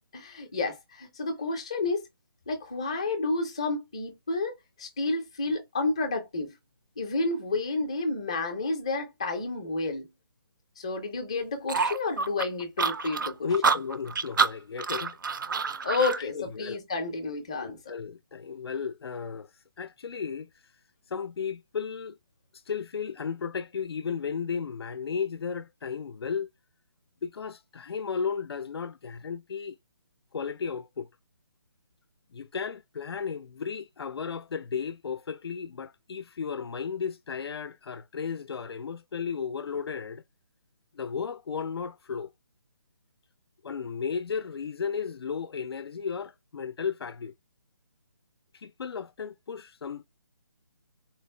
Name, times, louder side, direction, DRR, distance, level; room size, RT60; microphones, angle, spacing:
voice 1, 0.1-2.0 2.5-4.5 4.8-6.5 7.0-10.1 10.8-13.5 15.8-17.8, left 3 dB, 15° left, 0.5 m, -30 dB
sound 1, 11.7-16.2, right 5 dB, 55° right, 0.5 m, -27 dB
voice 2, 13.4-15.2 15.5-16.8 17.6-19.5 19.8-20.5 21.1-22.2 22.5-26.5 27.2-29.8 30.3-31.1 32.3-40.2 40.9-42.3 43.6-47.3 48.5-50.0, left 6 dB, 85° left, 0.4 m, -34 dB
4.3 x 2.0 x 3.1 m
hypercardioid pair, 175°, 13 cm